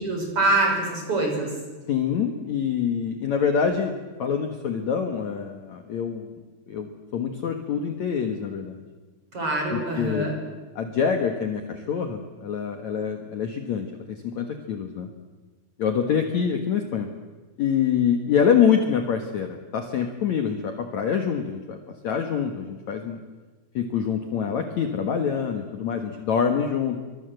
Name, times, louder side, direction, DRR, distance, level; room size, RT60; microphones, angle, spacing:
voice 1, 0.0-1.5 9.3-10.3, right 2 dB, 30° right, 1 dB, 7.0 m, -24 dB
voice 2, 1.9-6.3 6.7-8.8 9.7-10.3 10.8-15.1 15.8-17.1 17.6-21.8 22.0-23.2 23.7-27.0, left 7 dB, 55° left, 5 dB, 2.3 m, -25 dB
27.0 x 24.5 x 7.9 m, 1.3 s
omnidirectional pair, 4.9 m